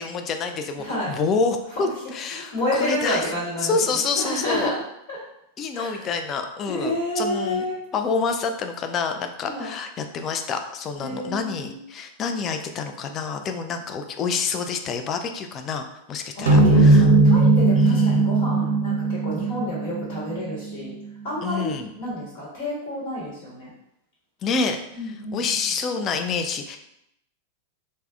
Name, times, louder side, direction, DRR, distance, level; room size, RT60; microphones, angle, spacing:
voice 1, 0.0-3.3 3.6-4.7 5.6-7.6 7.9-17.1 17.7-18.3 21.4-21.9 24.4-26.8, left 5 dB, 30° left, 6 dB, 0.3 m, -28 dB
voice 2, 0.8-1.1 2.4-3.7 4.2-4.8 5.1-5.2 5.7-6.1 6.6-7.8 9.4-9.7 11.0-11.8 16.3-20.9 21.2-21.7 22.0-23.7 24.9-25.4, left 1 dB, 45° left, -6 dB, 1.1 m, -29 dB
sound 1, 16.5-21.1, right 3 dB, 70° right, 0.5 m, -18 dB
3.3 x 2.1 x 2.4 m, 0.79 s
figure-of-eight pair, 95°, 0 cm